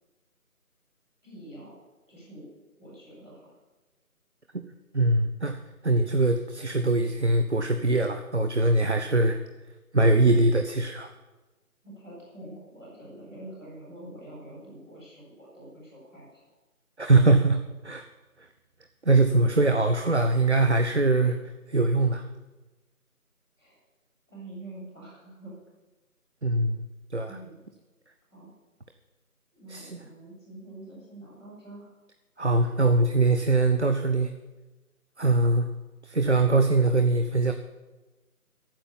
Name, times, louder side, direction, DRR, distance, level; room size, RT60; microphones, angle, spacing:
voice 1, 1.2-1.7 2.1-2.5 2.8-3.6 11.8-16.4 23.5-23.8 24.3-25.5 27.3-27.6 28.3-28.5 29.5-32.0 35.1-35.3, right 1 dB, 5° right, -25 dB, 2.9 m, -46 dB
voice 2, 4.9-5.6 5.8-9.4 9.9-11.1 17.0-18.0 19.0-22.2 26.4-26.8 27.1-27.3 29.7-29.9 32.4-34.3 35.2-35.7 36.0-37.5, right 2 dB, 50° right, 7 dB, 0.8 m, -22 dB
14.0 x 8.9 x 7.1 m, 1.2 s
figure-of-eight pair, 175°, 45 cm